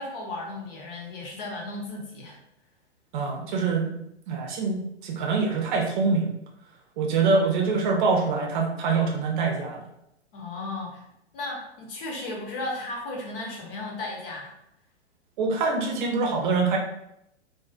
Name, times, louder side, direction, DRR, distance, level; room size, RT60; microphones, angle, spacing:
voice 1, 0.0-2.4 10.3-11.0 11.3-14.5, left 2 dB, 50° left, -1 dB, 1.0 m, -35 dB
voice 2, 3.1-3.9 4.3-6.3 7.0-9.8 15.4-16.8, right 4 dB, 45° right, 2 dB, 0.6 m, -24 dB
2.5 x 2.3 x 2.4 m, 0.80 s
hypercardioid pair, 125°, 35 cm